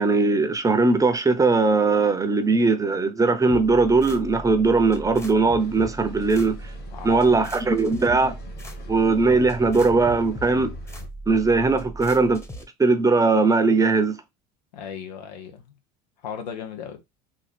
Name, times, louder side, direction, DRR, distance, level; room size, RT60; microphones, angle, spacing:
voice 1, 0.0-6.7 7.0-8.4 8.9-10.7 11.3-12.4 12.8-14.2, right 3 dB, 15° right, 0.7 m, -20 dB
sound 1, 3.5-12.6, right 1 dB, 15° left, 1.0 m, -38 dB
sound 2, 5.6-11.1, left 4 dB, 55° left, 2.1 m, -44 dB
voice 2, 6.9-7.5 14.7-15.8 16.2-17.0, left 7 dB, 90° left, 1.0 m, -36 dB
3.8 x 2.6 x 3.2 m
hypercardioid pair, 90°, 21 cm